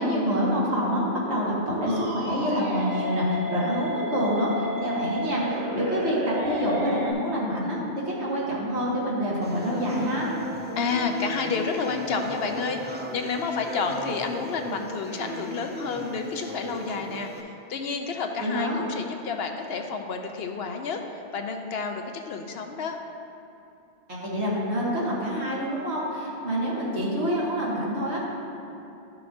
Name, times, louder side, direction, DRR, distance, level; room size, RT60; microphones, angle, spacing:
voice 1, 0.0-10.3 18.4-18.8 24.1-28.2, equal, 70° right, -6 dB, 1.9 m, -27 dB
sound 1, 1.9-7.1, equal, 50° right, 1.3 m, -32 dB
sound 2, 9.4-17.4, right 1 dB, 20° right, 0.3 m, -36 dB
voice 2, 10.8-23.0, left 5 dB, 65° left, 4 dB, 0.8 m, -30 dB
12.0 x 5.9 x 2.6 m, 2.8 s
omnidirectional pair, 1.2 m